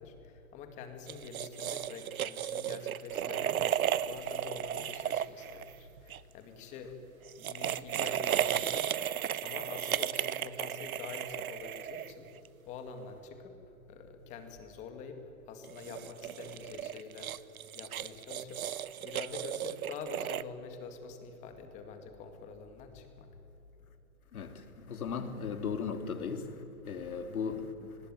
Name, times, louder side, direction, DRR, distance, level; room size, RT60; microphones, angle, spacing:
voice 1, 0.0-6.9 7.4-12.3 12.7-17.3 17.7-23.3 23.8-23.9, left 5 dB, 15° left, 2.1 m, -46 dB
sound 1, 1.1-6.2 7.3-12.5 15.6-20.4, right 10 dB, 75° right, 1.0 m, -34 dB
voice 2, 24.3-28.0, left 6 dB, 80° left, 3.2 m, -37 dB
29.5 x 20.5 x 9.5 m
hypercardioid pair, 170°, 43 cm